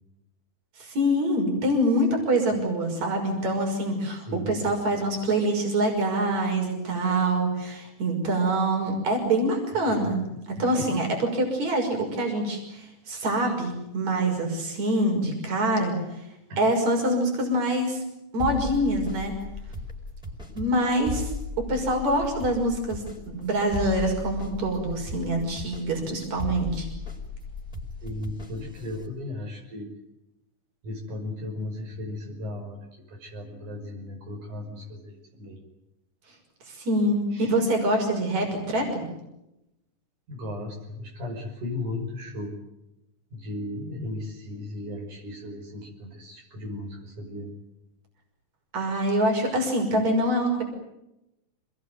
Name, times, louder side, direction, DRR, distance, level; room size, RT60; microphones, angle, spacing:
voice 1, 0.8-10.2 10.6-11.1 11.3-16.0 16.6-18.0 18.3-19.3 20.6-21.3 21.6-26.9 36.7-39.1 48.7-50.6, right 1 dB, 65° right, 3 dB, 7.2 m, -25 dB
voice 2, 3.9-4.7 10.6-10.9 13.4-13.5 16.5-16.6 28.0-29.9 30.8-35.6 37.3-37.6 40.3-42.6 43.3-47.5, left 2 dB, 80° right, 1 dB, 7.2 m, -36 dB
sound 1, 18.4-29.1, left 3 dB, ahead, 4.6 m, -36 dB
27.5 x 21.0 x 9.3 m, 0.89 s
omnidirectional pair, 3.5 m